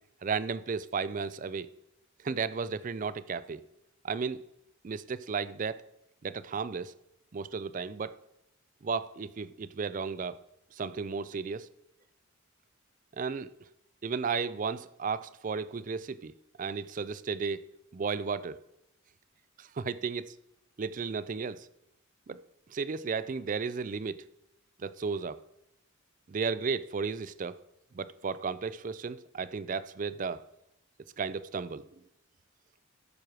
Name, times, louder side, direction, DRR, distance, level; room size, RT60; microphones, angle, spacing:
voice 1, 0.2-1.7 2.2-3.6 4.0-4.4 4.8-5.8 6.2-6.9 7.3-8.2 8.8-10.4 10.7-11.7 13.2-13.5 14.0-16.3 16.6-17.6 17.9-18.6 19.6-20.3 20.8-21.7 22.3-22.4 22.7-24.3 24.8-25.4 26.3-27.6 27.9-30.4 31.2-31.9, right 5 dB, 35° right, 0.3 m, -34 dB
13.5 x 6.1 x 4.8 m
head